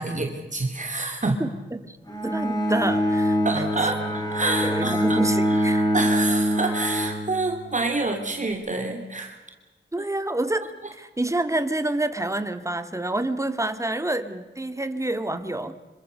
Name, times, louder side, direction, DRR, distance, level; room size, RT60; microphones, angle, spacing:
voice 1, 0.0-1.4 3.4-9.4, right 2 dB, 40° right, 3 dB, 3.1 m, -28 dB
Bowed string instrument, 2.1-7.9, equal, 20° left, 4.9 m, -24 dB
voice 2, 2.2-3.7 4.6-5.9 9.9-15.7, right 1 dB, 15° right, 9 dB, 2.1 m, -28 dB
26.5 x 24.0 x 6.7 m, 1.2 s
wide cardioid pair, 85°, 19 cm